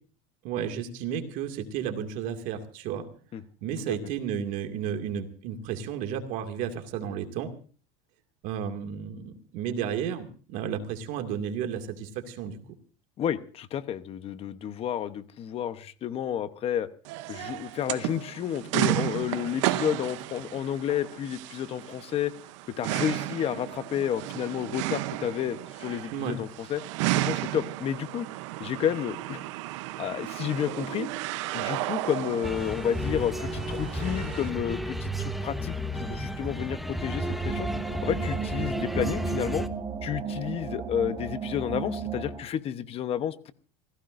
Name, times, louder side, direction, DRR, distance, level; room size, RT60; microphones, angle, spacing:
voice 1, 0.4-3.1 3.6-7.5 8.4-12.6 26.1-26.4, right 8 dB, 60° right, 6 dB, 2.3 m, -32 dB
voice 2, 13.2-16.9 17.3-22.3 22.8-26.8 27.2-28.3 28.6-29.4 30.0-31.1 31.5-37.7 38.0-39.6 40.0-43.5, left 9 dB, 40° left, 12 dB, 1.0 m, -31 dB
sound 1, 17.1-34.5, right 17 dB, 85° right, 0.8 m, -33 dB
sound 2, 32.4-39.7, equal, ahead, 1.0 m, -32 dB
sound 3, 37.2-42.4, right 5 dB, 25° right, 1.7 m, -34 dB
27.0 x 16.0 x 2.6 m, 0.39 s
supercardioid pair, 130°, 15 cm